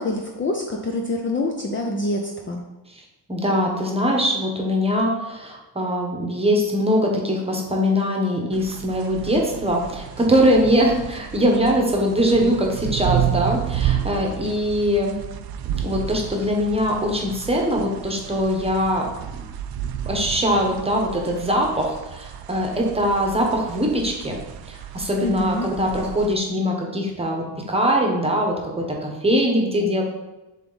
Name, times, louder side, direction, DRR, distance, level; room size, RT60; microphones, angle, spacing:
voice 1, 0.0-2.6 25.2-25.7, left 2 dB, 30° left, 1 dB, 0.5 m, -26 dB
voice 2, 3.3-15.1 15.8-19.1 20.1-24.4 24.7-30.0, equal, 15° right, 0 dB, 1.0 m, -22 dB
sound 1, 8.5-26.3, right 10 dB, 60° right, 0.5 m, -31 dB
7.1 x 3.5 x 4.0 m, 1.0 s
cardioid pair, 145°, 43 cm